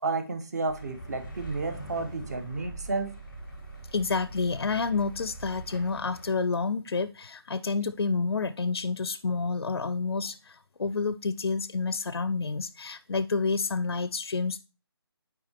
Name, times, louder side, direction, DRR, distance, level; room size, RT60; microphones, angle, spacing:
voice 1, 0.0-3.1, right 3 dB, 40° right, 7 dB, 0.9 m, -31 dB
sound 1, 0.7-6.3, right 2 dB, ahead, 0.4 m, -43 dB
voice 2, 3.9-14.6, left 4 dB, 65° left, 14 dB, 0.4 m, -29 dB
7.7 x 4.8 x 2.9 m, 0.32 s
figure-of-eight pair, 155°, 14 cm